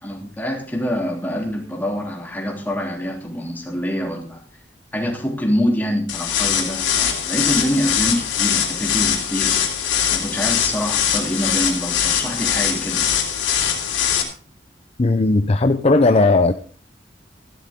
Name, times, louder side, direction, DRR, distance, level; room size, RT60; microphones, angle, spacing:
voice 1, 0.0-4.4 4.9-9.6 10.1-13.1, equal, 10° left, 0 dB, 3.1 m, -25 dB
sound 1, 6.1-14.2, left 8 dB, 90° left, 3.1 m, -21 dB
voice 2, 15.0-16.5, left 3 dB, 35° left, 9 dB, 0.5 m, -16 dB
15.0 x 12.0 x 3.6 m, 0.42 s
head